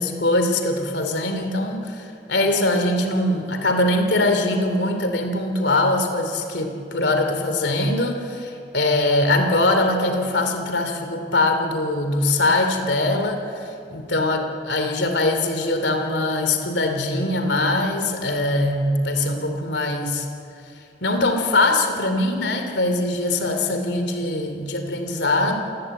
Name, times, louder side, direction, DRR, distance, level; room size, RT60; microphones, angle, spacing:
voice 1, 0.0-20.3 21.0-25.6, left 2 dB, 80° left, 5 dB, 3.0 m, -22 dB
29.5 x 17.0 x 8.9 m, 2.6 s
head